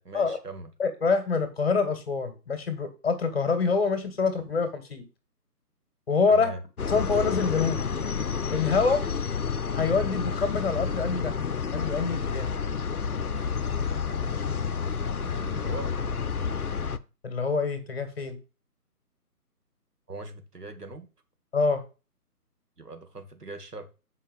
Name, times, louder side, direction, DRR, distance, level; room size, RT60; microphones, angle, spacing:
voice 1, 0.0-0.7 6.3-6.6 15.2-15.9 20.1-21.1 22.8-23.9, right 2 dB, 75° right, 6 dB, 2.5 m, -40 dB
voice 2, 0.8-5.0 6.1-6.5 6.9-7.8 8.5-9.0 9.7-11.3 11.7-12.5 17.2-18.4 21.5-21.8, left 4 dB, 40° left, 8 dB, 2.2 m, -26 dB
sound 1, 6.8-17.0, left 5 dB, 65° left, 0.9 m, -30 dB
8.3 x 5.6 x 5.5 m, 0.30 s
figure-of-eight pair, 150°, 47 cm